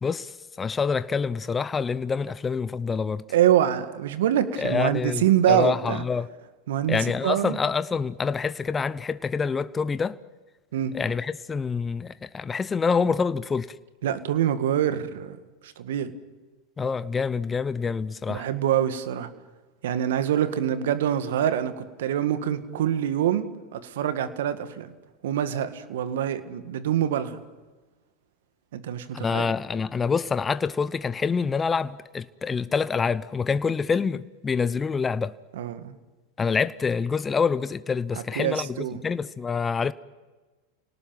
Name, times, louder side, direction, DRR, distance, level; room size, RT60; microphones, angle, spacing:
voice 1, 0.0-3.2 4.6-6.3 6.9-10.2 10.9-13.7 16.8-18.4 29.1-35.4 36.4-39.9, left 5 dB, 20° left, 0.8 m, -26 dB
voice 2, 3.3-6.0 6.7-7.6 10.7-10.9 14.0-15.4 15.6-16.1 18.3-19.3 19.8-24.9 25.2-27.4 28.7-29.5 35.6-35.9 38.4-39.0, right 10 dB, 75° right, 1.9 m, -25 dB
29.0 x 18.5 x 9.2 m
hypercardioid pair, 95°, 0 cm